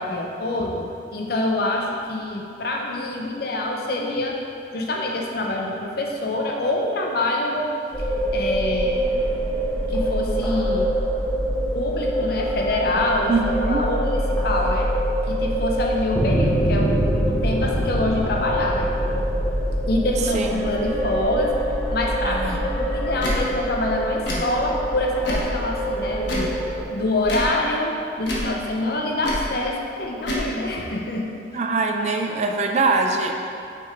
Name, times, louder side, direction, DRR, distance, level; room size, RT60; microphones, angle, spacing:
voice 1, 0.0-4.4 4.7-7.7 8.0-8.1 8.3-9.0 9.9-10.9 11.7-13.3 13.6-14.9 15.3-18.9 19.9-21.5 21.9-26.5 26.9-31.3, left 2 dB, 60° left, 0 dB, 0.7 m, -26 dB
sound 1, 7.9-26.8, right 1 dB, 5° left, 0.9 m, -24 dB
voice 2, 13.3-13.8 20.2-20.6 22.2-22.6 31.5-33.3, right 3 dB, 40° right, 3 dB, 0.4 m, -23 dB
Tick / Tick-tock, 23.2-23.4 24.2-24.4 25.2-25.5 26.2-26.5 27.2-27.5 28.2-28.5 29.2-29.5 30.2-30.5, left 1 dB, 80° left, 1.1 m, -27 dB
5.8 x 3.6 x 4.5 m, 2.5 s
head